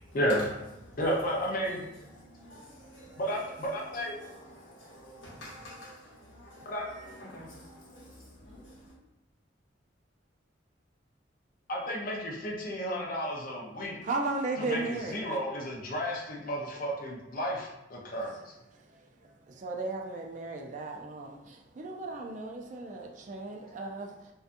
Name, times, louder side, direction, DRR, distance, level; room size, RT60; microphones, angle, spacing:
voice 1, 0.1-0.5 1.0-1.9 3.2-4.2 6.7-6.9 11.7-14.0 14.6-18.5, equal, 45° left, -2 dB, 0.5 m, -32 dB
voice 2, 2.1-3.2 3.8-8.9, equal, 80° left, -6 dB, 1.0 m, -49 dB
voice 3, 14.0-15.2 19.2-24.1, right 3 dB, 40° right, 1 dB, 0.3 m, -35 dB
2.6 x 2.2 x 2.5 m, 0.93 s
head